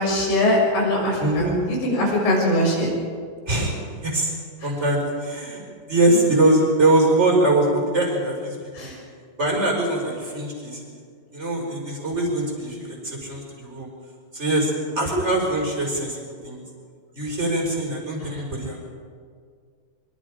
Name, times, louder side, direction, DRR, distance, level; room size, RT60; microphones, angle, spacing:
voice 1, 0.0-2.9 8.8-9.0 15.1-15.2, left 1 dB, 75° left, -3 dB, 8.9 m, -22 dB
voice 2, 1.2-1.5 3.4-3.8 4.0-4.3 4.6-5.6 5.9-8.9 9.4-10.9 11.3-13.9 14.3-16.6 17.1-18.8, right 2 dB, 15° right, 0 dB, 4.8 m, -22 dB
24.5 x 23.5 x 5.0 m, 2.1 s
omnidirectional pair, 5.1 m